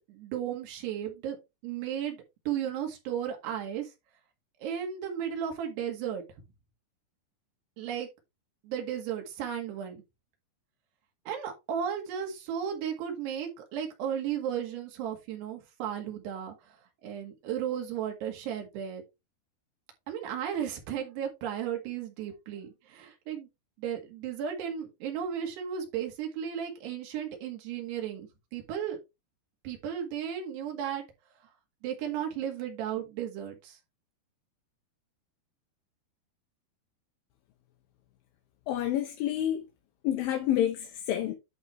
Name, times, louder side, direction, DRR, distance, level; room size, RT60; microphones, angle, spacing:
voice 1, 0.1-1.4 1.6-3.9 4.6-6.2 7.8-8.1 8.6-10.0 11.3-19.0 20.1-23.5 23.8-29.0 29.6-31.0 31.8-33.8, right 9 dB, 85° right, 4.0 m, -35 dB
voice 2, 38.7-39.6 40.0-41.3, left 11 dB, 70° left, 2.5 m, -28 dB
11.0 x 4.4 x 3.2 m
omnidirectional pair, 4.7 m